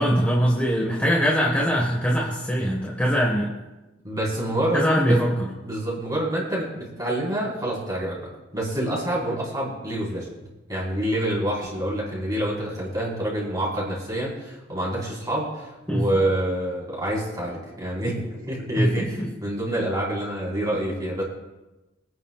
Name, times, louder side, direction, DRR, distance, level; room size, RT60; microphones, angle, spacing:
voice 1, 0.0-3.5 4.7-5.5 15.9-16.1 18.8-18.9, equal, 10° left, -2 dB, 1.6 m, -22 dB
voice 2, 4.0-5.2 5.6-8.3 8.5-10.3 10.7-21.2, right 1 dB, 20° right, -6 dB, 4.7 m, -27 dB
25.5 x 9.6 x 2.5 m, 1.1 s
head